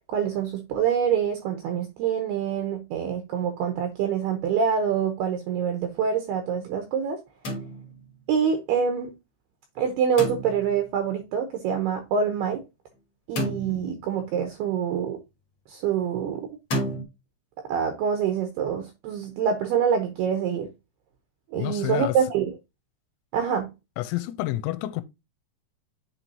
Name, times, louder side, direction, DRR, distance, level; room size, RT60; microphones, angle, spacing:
voice 1, 0.1-7.2 8.3-9.1 9.8-12.6 13.3-15.2 15.7-16.5 17.7-20.7 21.5-22.5 23.3-23.7, right 7 dB, 75° right, 2.5 m, -26 dB
sound 1, 7.4-8.2 10.2-10.9 13.4-14.2 16.7-17.0, equal, 40° left, 2.1 m, -31 dB
voice 2, 21.5-22.2 24.0-25.0, left 15 dB, 85° left, 2.9 m, -29 dB
8.3 x 4.5 x 2.8 m
omnidirectional pair, 5.4 m